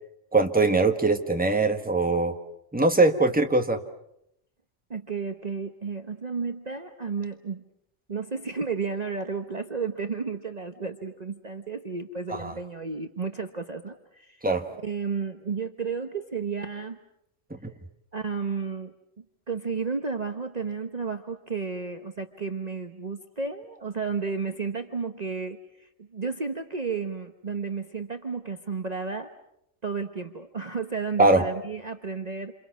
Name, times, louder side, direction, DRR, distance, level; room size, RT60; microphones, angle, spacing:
voice 1, 0.3-2.3 2.7-3.8 12.3-12.5 14.4-14.6 17.5-17.7 31.2-31.4, right 3 dB, 5° right, 5 dB, 1.5 m, -22 dB
voice 2, 4.9-7.6 8.1-14.5 14.8-17.0 18.1-18.9 19.5-29.3 29.8-32.5, right 5 dB, 35° right, 6 dB, 1.1 m, -32 dB
28.0 x 28.0 x 6.1 m, 0.78 s
omnidirectional pair, 1.2 m